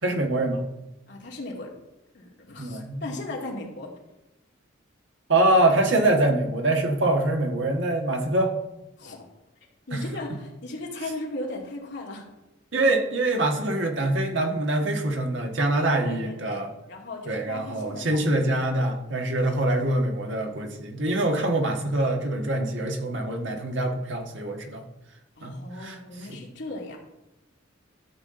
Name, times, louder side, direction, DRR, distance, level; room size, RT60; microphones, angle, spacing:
voice 1, 0.0-0.7 2.6-3.1 5.3-8.5 9.9-10.0 12.7-16.7 17.2-24.8 25.4-26.0 26.3-26.4, right 2 dB, 65° right, 3 dB, 1.5 m, -24 dB
voice 2, 1.1-1.7 2.1-3.9 9.0-9.3 9.9-12.2 16.0-18.3 25.4-27.0, left 2 dB, 60° left, -2 dB, 2.3 m, -37 dB
13.0 x 7.4 x 3.8 m, 0.96 s
head